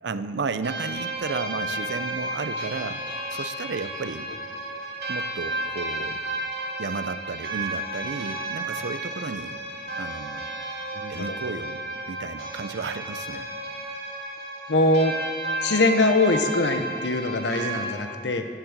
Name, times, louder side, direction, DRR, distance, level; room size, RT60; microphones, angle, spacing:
voice 1, 0.0-3.0 3.3-4.3 5.1-6.2 6.8-9.6 10.0-10.5 11.1-11.8 12.1-13.5, right 4 dB, 80° right, 12 dB, 0.6 m, -33 dB
sound 1, 0.6-18.0, right 1 dB, 60° right, 3.2 m, -33 dB
voice 2, 10.9-11.4 14.7-15.2 15.6-18.5, left 2 dB, 85° left, 7 dB, 1.0 m, -22 dB
10.5 x 10.5 x 7.4 m, 2.2 s
head